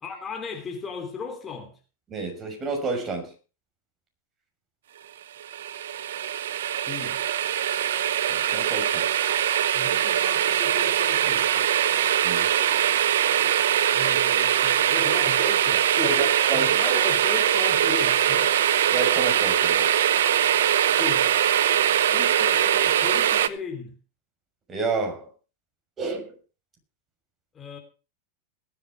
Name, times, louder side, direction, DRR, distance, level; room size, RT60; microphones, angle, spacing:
voice 1, 0.0-1.8 6.9-7.2 9.7-11.7 13.9-16.2 16.5-18.6 21.0-21.4 22.1-23.9 27.5-27.8, left 5 dB, 25° left, 3.3 m, -36 dB
voice 2, 2.1-3.3 8.3-9.1 12.2-12.5 16.0-17.0 18.9-19.9 24.7-25.3 26.0-26.4, right 3 dB, 25° right, 6.4 m, -30 dB
sound 1, 5.4-23.5, right 10 dB, 75° right, 0.9 m, -22 dB
21.0 x 8.3 x 4.9 m
hypercardioid pair, 100°, 0 cm